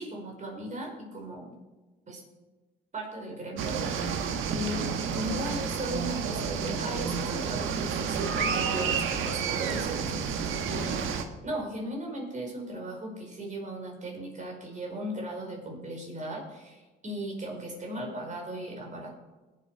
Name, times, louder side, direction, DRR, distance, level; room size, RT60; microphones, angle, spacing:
voice 1, 0.0-1.6 2.1-2.2 2.9-3.8 4.5-19.1, right 1 dB, 40° right, -1 dB, 5.1 m, -37 dB
sound 1, 3.6-11.2, right 6 dB, 85° right, 1.4 m, -30 dB
20.5 x 7.9 x 4.9 m, 1.2 s
cardioid pair, 90°, 20 cm